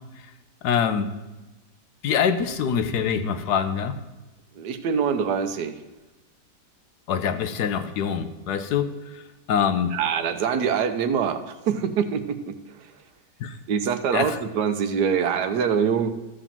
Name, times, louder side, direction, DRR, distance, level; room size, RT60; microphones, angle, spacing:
voice 1, 0.6-1.1 2.0-4.0 7.1-8.9 9.5-9.9 13.4-13.5 14.1-14.3, left 7 dB, 70° left, 9 dB, 1.3 m, -24 dB
voice 2, 4.5-5.8 9.9-13.0 13.7-16.1, right 7 dB, 75° right, 9 dB, 1.4 m, -25 dB
13.5 x 5.1 x 7.3 m, 1.1 s
omnidirectional pair, 1.8 m